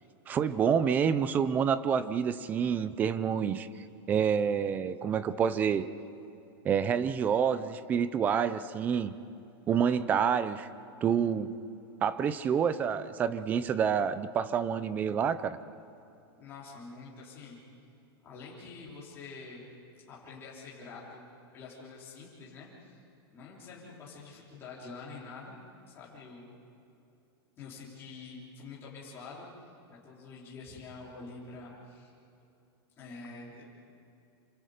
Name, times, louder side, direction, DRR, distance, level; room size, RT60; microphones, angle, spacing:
voice 1, 0.3-3.7 4.1-5.8 6.6-9.1 9.7-10.7 11.0-11.5 12.0-15.6, right 7 dB, 15° right, 14 dB, 0.4 m, -28 dB
voice 2, 16.4-17.6 18.2-19.7 20.1-21.3 21.5-23.0 23.3-25.6 25.9-26.5 27.6-29.5 29.9-32.1 33.0-33.7, left 4 dB, 15° left, -7 dB, 3.8 m, -46 dB
27.5 x 27.0 x 5.1 m, 2.7 s
supercardioid pair, 180°, 13 cm